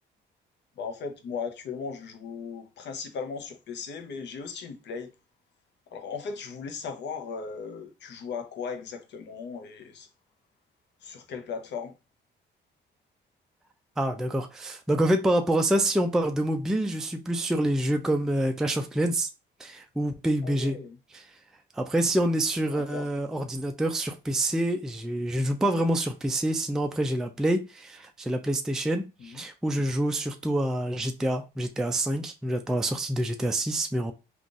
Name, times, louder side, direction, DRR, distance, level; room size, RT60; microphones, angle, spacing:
voice 1, 0.8-5.1 5.9-10.1 11.0-11.9 20.4-21.0 22.7-23.1 29.2-29.4, left 5 dB, 65° left, 0.7 m, -37 dB
voice 2, 14.0-19.3 19.6-20.8 21.1-21.2 21.8-34.1, right 1 dB, 5° right, 0.3 m, -27 dB
3.7 x 2.4 x 2.4 m
cardioid pair, 90°, 20 cm